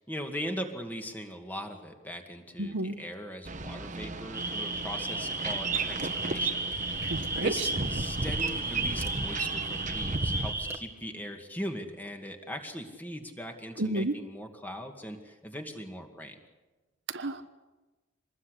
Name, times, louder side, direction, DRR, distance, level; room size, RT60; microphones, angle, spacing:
voice 1, 0.0-6.6 7.4-16.3, equal, 10° left, 4 dB, 2.2 m, -39 dB
voice 2, 2.6-3.0 7.0-7.7 13.8-14.2 17.1-17.5, right 2 dB, 65° right, 9 dB, 1.2 m, -31 dB
Boat Water vehicle, 3.4-10.5, right 3 dB, 40° right, 1.2 m, -34 dB
sound 1, 4.3-10.8, right 2 dB, 15° right, 1.8 m, -34 dB
26.0 x 20.5 x 8.3 m, 1.2 s
head